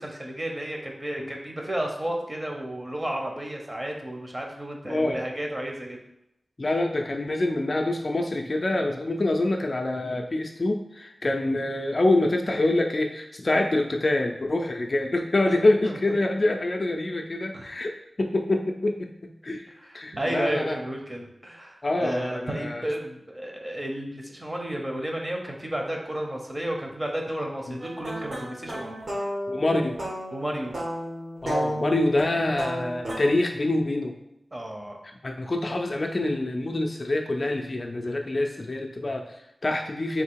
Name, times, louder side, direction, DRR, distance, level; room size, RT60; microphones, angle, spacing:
voice 1, 0.0-6.0 15.5-15.6 15.8-16.0 17.5-17.8 19.7-29.0 30.3-30.7 34.5-35.0, right 1 dB, 25° right, 1 dB, 0.8 m, -32 dB
voice 2, 4.9-5.2 6.6-19.1 19.4-19.6 19.9-20.8 21.8-22.8 29.5-30.0 31.4-34.1 35.2-40.2, left 2 dB, 45° left, 3 dB, 0.4 m, -26 dB
sound 1, 27.8-33.3, equal, 70° right, 1.6 m, -33 dB
3.6 x 2.8 x 4.6 m, 0.84 s
wide cardioid pair, 95°, 0 cm